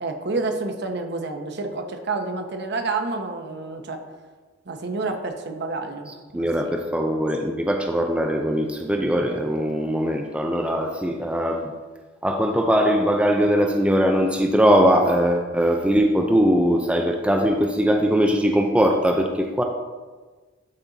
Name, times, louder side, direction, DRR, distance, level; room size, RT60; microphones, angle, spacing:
voice 1, 0.0-4.0 4.7-6.7, right 3 dB, 55° right, 5 dB, 0.9 m, -29 dB
voice 2, 6.3-11.7 12.2-19.6, equal, 5° right, 3 dB, 0.4 m, -21 dB
12.0 x 4.2 x 4.0 m, 1.4 s
head